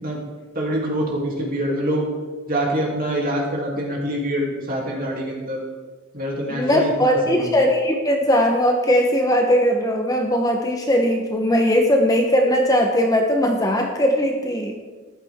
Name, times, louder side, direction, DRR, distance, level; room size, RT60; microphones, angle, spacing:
voice 1, 0.5-2.1 2.5-5.6 6.1-7.6, right 1 dB, 40° right, -2 dB, 2.9 m, -25 dB
voice 2, 6.5-14.8, equal, 15° left, 2 dB, 0.9 m, -19 dB
14.0 x 11.5 x 3.6 m, 1.4 s
head